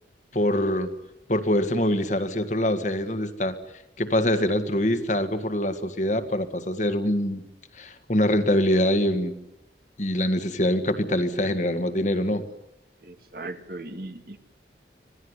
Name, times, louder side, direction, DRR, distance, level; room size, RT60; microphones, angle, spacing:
voice 1, 0.3-0.9 1.3-3.6 4.0-7.4 7.8-9.4 10.0-12.4, left 1 dB, 40° left, 8 dB, 1.9 m, -24 dB
voice 2, 13.0-14.4, right 2 dB, 55° right, 7 dB, 2.4 m, -38 dB
26.0 x 19.0 x 10.0 m, 0.89 s
head